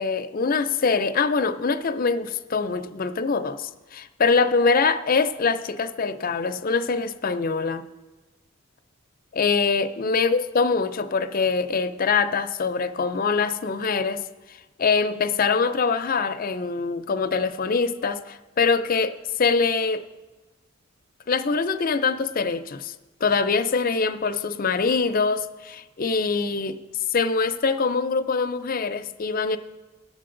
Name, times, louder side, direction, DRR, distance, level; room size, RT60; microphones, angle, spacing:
voice 1, 0.0-7.9 9.3-14.2 14.8-20.0 21.3-22.9 23.2-26.8 27.1-29.6, left 4 dB, 45° left, 0.5 m, -24 dB
18.5 x 6.8 x 3.8 m
head